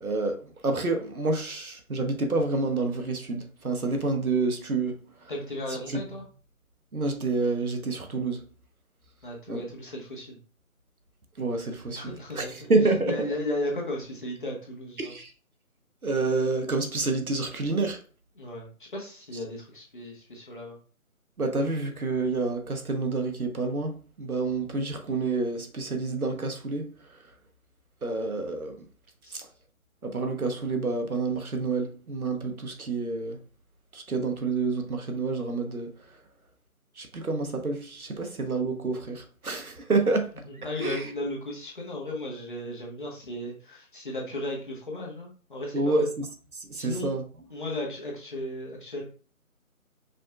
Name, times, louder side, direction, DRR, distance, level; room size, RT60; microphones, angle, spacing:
voice 1, 0.0-5.0 5.7-6.0 6.9-8.4 9.5-9.6 11.4-13.1 15.0-15.3 16.0-18.0 21.4-26.9 28.0-28.8 29.3-29.5 30.0-33.4 33.9-35.9 37.0-40.3 40.8-41.1 45.7-46.3 46.5-47.2, right 3 dB, 80° right, 1.2 m, -28 dB
voice 2, 5.3-6.2 9.2-10.4 11.9-12.7 13.0-15.1 18.4-20.8 40.5-46.1 46.7-47.1 47.5-49.0, left 1 dB, 35° left, 1.3 m, -35 dB
5.2 x 3.5 x 2.4 m
figure-of-eight pair, 160°, 43 cm